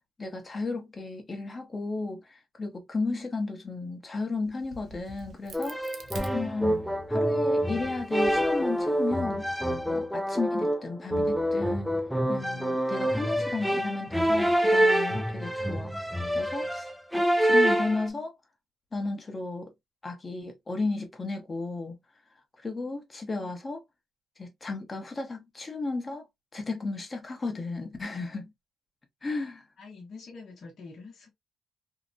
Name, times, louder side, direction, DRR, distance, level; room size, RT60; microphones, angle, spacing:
voice 1, 0.2-5.8 6.3-9.5 9.9-11.9 12.3-15.9 16.3-18.4 18.9-19.7 20.0-22.0 22.6-23.8 24.4-26.2 26.5-28.5 29.2-29.6, left 3 dB, 30° left, 0.9 m, -34 dB
Crack, 4.4-7.1 7.6-9.3, right 2 dB, 50° right, 0.6 m, -47 dB
sound 1, 5.5-18.1, equal, ahead, 0.4 m, -26 dB
voice 2, 29.8-31.3, left 4 dB, 55° left, 0.9 m, -45 dB
2.7 x 2.2 x 2.5 m
cardioid pair, 90°, 0 cm